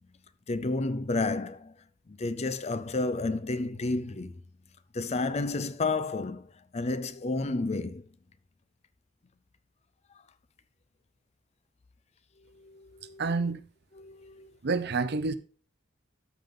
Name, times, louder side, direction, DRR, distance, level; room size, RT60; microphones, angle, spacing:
voice 1, 0.5-1.7 2.1-4.3 4.9-8.1 12.5-13.3 14.0-14.5, left 3 dB, 35° left, 0.5 m, -31 dB
voice 2, 13.2-13.6 14.6-15.4, right 4 dB, 55° right, 0.7 m, -28 dB
13.0 x 5.3 x 3.7 m
head